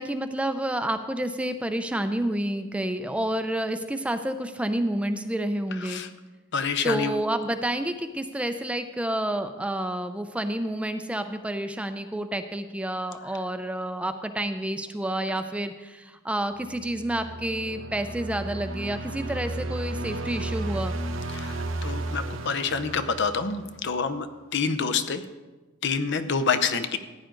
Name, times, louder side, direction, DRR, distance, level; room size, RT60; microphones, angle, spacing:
voice 1, 0.0-6.0 6.8-21.0, right 1 dB, 5° right, 9 dB, 0.5 m, -29 dB
voice 2, 6.5-7.1 21.3-24.3 24.5-25.2 25.8-27.0, left 5 dB, 60° left, 11 dB, 0.7 m, -27 dB
sound 1, 16.6-24.0, right 2 dB, 70° right, 0.8 m, -33 dB
15.0 x 9.2 x 3.8 m, 1.2 s
head